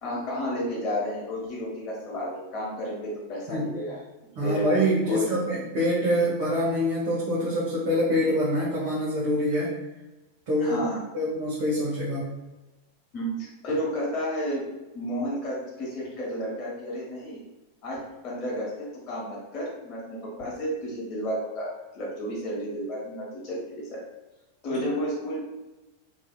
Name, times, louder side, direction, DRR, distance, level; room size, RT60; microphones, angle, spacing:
voice 1, 0.0-4.0 4.4-4.7 5.1-5.4 10.6-11.0 13.1-14.6 14.9-17.4 17.8-21.7 21.9-24.0 24.6-25.4, equal, 35° left, -5 dB, 1.1 m, -32 dB
voice 2, 4.4-9.7 10.5-10.8 11.1-12.2 24.7-24.8, equal, 45° right, -7 dB, 0.8 m, -25 dB
2.6 x 2.6 x 2.2 m, 1.1 s
figure-of-eight pair, 90°, 0 cm